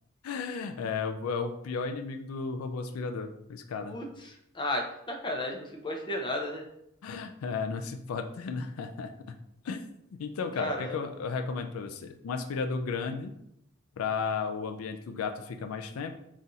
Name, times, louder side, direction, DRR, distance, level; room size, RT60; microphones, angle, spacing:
voice 1, 0.2-4.0 7.0-9.1 9.6-9.9 10.2-13.3 14.0-16.2, left 5 dB, 80° left, 6 dB, 0.4 m, -34 dB
voice 2, 3.9-6.6 10.5-11.0, left 1 dB, 25° left, 1 dB, 0.6 m, -34 dB
4.0 x 2.4 x 4.0 m, 0.78 s
head